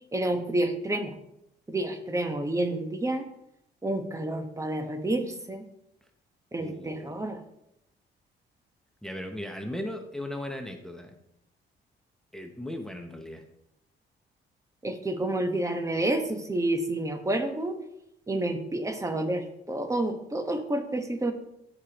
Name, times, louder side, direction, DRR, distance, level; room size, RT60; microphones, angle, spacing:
voice 1, 0.1-1.1 1.7-3.3 3.8-5.6 6.5-7.4 14.8-17.8 18.3-21.3, right 1 dB, 15° right, 6 dB, 1.2 m, -29 dB
voice 2, 6.6-7.3 9.0-11.1 12.3-13.4, left 1 dB, 5° left, 5 dB, 0.8 m, -37 dB
14.0 x 5.0 x 3.0 m, 0.79 s
cardioid pair, 90°, 20 cm